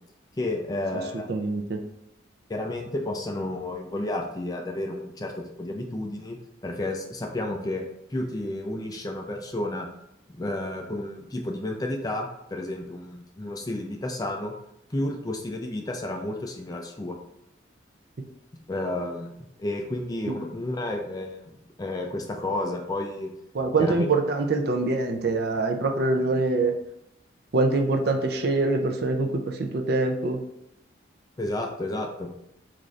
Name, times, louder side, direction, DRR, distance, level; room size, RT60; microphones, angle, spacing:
voice 1, 0.4-1.3 2.5-7.8 8.1-9.9 10.3-14.5 14.9-17.2 18.7-23.3 23.8-24.1 31.4-32.3, left 1 dB, 20° left, 2 dB, 0.3 m, -31 dB
voice 2, 1.3-1.8 23.6-26.8 27.5-30.4, right 3 dB, 55° right, 4 dB, 0.4 m, -24 dB
3.7 x 2.5 x 3.1 m, 0.83 s
head